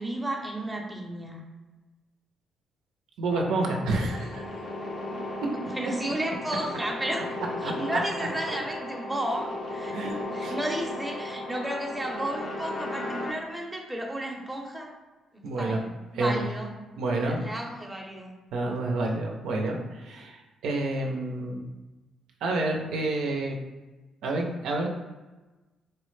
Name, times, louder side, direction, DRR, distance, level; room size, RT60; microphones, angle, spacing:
voice 1, 0.0-1.4 5.6-7.3 7.6-14.9 15.3-16.7 17.1-18.3, right 1 dB, 10° right, 0 dB, 0.7 m, -33 dB
voice 2, 3.2-4.4 5.4-5.5 7.6-8.0 8.5-8.6 9.9-10.5 15.4-15.8 16.1-16.5 17.0-17.4 18.5-21.6 22.4-23.6 24.2-24.9, right 2 dB, 80° right, 1 dB, 0.5 m, -29 dB
sound 1, 3.3-13.3, left 2 dB, 45° left, 0.5 m, -36 dB
4.2 x 2.0 x 3.1 m, 1.2 s
cardioid pair, 90°, 0 cm